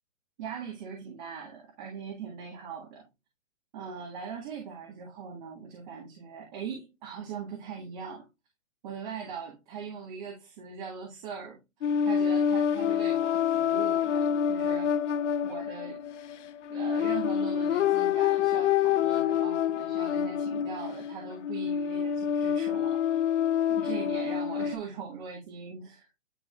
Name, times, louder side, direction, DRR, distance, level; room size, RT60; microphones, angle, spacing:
voice 1, 0.4-3.0 3.7-8.3 8.8-15.0 15.4-16.0 16.7-23.2 23.7-26.1, right 6 dB, 35° right, 1.9 m, -41 dB
sound 1, 11.8-24.8, left 8 dB, 65° left, 0.8 m, -27 dB
11.0 x 3.8 x 2.4 m
hypercardioid pair, 165°, 39 cm